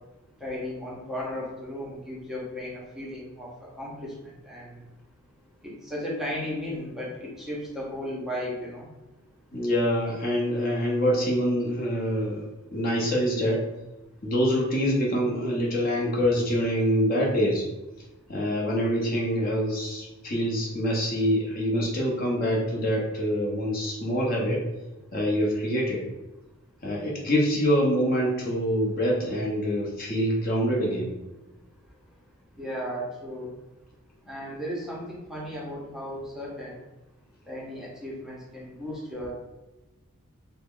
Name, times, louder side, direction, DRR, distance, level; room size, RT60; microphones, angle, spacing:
voice 1, 0.4-3.5 3.8-4.1 4.4-4.7 5.6-8.9 32.6-33.5 34.3-36.8 37.5-39.3, left 1 dB, ahead, -6 dB, 0.6 m, -35 dB
voice 2, 9.5-12.4 12.7-13.6 14.2-17.7 18.3-24.6 25.1-26.1 26.8-31.1, equal, 40° left, -3 dB, 0.7 m, -25 dB
3.5 x 2.0 x 3.6 m, 1.0 s
head